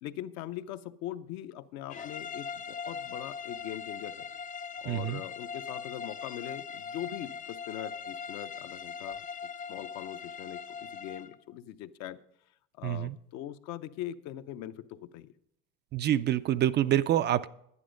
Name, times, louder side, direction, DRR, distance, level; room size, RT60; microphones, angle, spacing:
voice 1, 0.0-4.3 4.8-9.2 9.7-12.2 12.8-15.3, left 12 dB, 60° left, 11 dB, 0.7 m, -41 dB
sound 1, 1.9-11.4, left 6 dB, 30° left, 0.4 m, -40 dB
voice 2, 4.9-5.2 12.8-13.1 15.9-17.5, right 12 dB, 35° right, 14 dB, 0.4 m, -26 dB
10.5 x 9.8 x 5.0 m, 0.75 s
supercardioid pair, 100°, 30 cm